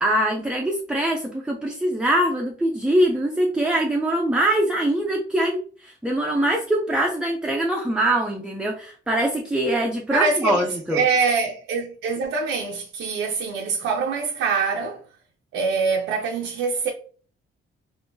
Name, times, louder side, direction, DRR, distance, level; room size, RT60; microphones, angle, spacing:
voice 1, 0.0-11.0, right 1 dB, 5° right, 0.3 m, -23 dB
voice 2, 10.1-10.7 10.9-15.0 15.5-16.9, right 4 dB, 85° right, 0.5 m, -24 dB
3.6 x 2.5 x 2.6 m
cardioid pair, 145°, 21 cm